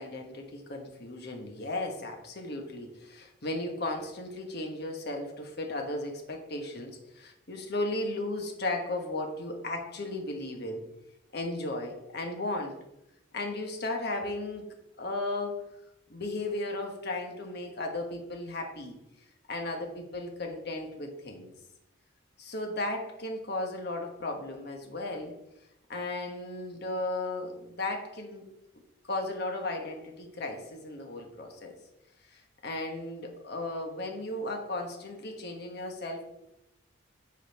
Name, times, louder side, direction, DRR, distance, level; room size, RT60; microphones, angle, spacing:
voice 1, 0.0-10.8 11.3-12.8 13.3-14.7 15.0-15.6 16.1-19.0 19.5-21.5 22.4-25.3 25.9-28.5 29.1-31.7 32.3-36.2, left 2 dB, 50° left, 2 dB, 1.3 m, -35 dB
8.4 x 4.2 x 5.2 m, 0.87 s
head